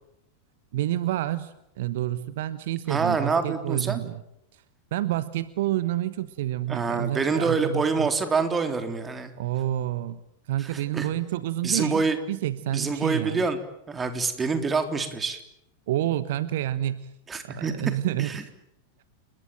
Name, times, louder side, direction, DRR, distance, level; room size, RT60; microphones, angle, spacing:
voice 1, 0.7-4.2 4.5-4.6 4.9-8.1 9.4-10.2 10.5-13.4 15.9-17.1 17.4-18.5, right 13 dB, 55° right, 15 dB, 1.1 m, -29 dB
voice 2, 2.9-4.0 6.7-9.3 10.6-11.1 11.6-12.2 12.7-13.6 13.9-15.4 17.3-17.7 18.2-18.4, right 4 dB, 15° right, 7 dB, 3.7 m, -26 dB
29.5 x 21.0 x 9.1 m, 0.83 s
figure-of-eight pair, 90°, 0 cm